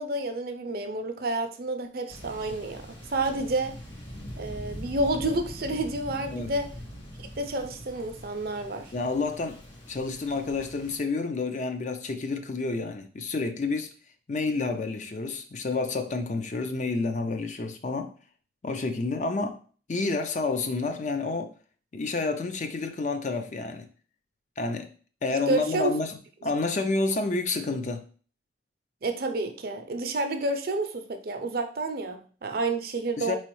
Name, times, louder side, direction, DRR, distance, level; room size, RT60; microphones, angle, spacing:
voice 1, 0.0-3.7 4.4-6.7 7.2-8.9 25.5-25.9 29.0-33.3, right 2 dB, 50° right, 0.5 m, -30 dB
Thunder, 2.1-11.0, equal, 90° left, 1.4 m, -43 dB
voice 2, 8.9-9.6 9.9-13.9 14.3-18.1 18.6-19.6 19.9-21.5 21.9-23.9 24.6-24.9 25.2-28.0 33.2-33.3, left 3 dB, 40° left, 0.4 m, -29 dB
4.5 x 3.1 x 3.0 m
head